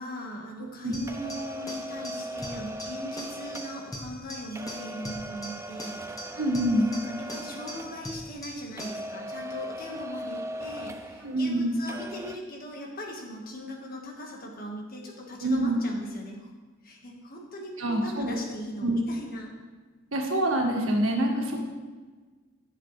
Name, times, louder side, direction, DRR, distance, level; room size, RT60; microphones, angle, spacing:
voice 1, 0.0-6.0 6.8-16.5 16.8-19.5 21.2-21.7, equal, 45° left, 0 dB, 1.7 m, -39 dB
sound 1, 0.9-9.1, equal, 15° left, 1.1 m, -42 dB
sound 2, 1.1-8.5 8.8-11.6 11.9-12.4, equal, 15° right, 0.4 m, -39 dB
voice 2, 6.4-6.9 11.2-11.7 15.4-15.7 17.8-18.4 18.8-18.9 20.1-21.7, right 1 dB, 80° right, 0 dB, 1.8 m, -26 dB
14.5 x 6.7 x 3.3 m, 1.4 s
head